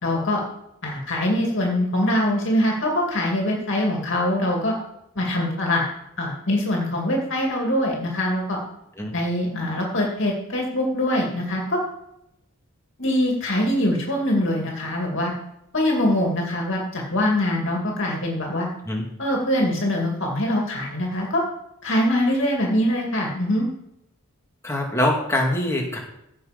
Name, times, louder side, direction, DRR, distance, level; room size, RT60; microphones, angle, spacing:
voice 1, 0.0-0.4 0.8-4.7 5.2-5.9 6.2-8.6 9.1-11.8 13.0-15.3 15.7-18.7 19.2-21.4 21.8-23.7, left 1 dB, 55° left, -1 dB, 2.4 m, -23 dB
voice 2, 24.6-26.0, left 1 dB, 10° left, -1 dB, 2.1 m, -23 dB
16.0 x 6.1 x 5.2 m, 0.82 s
head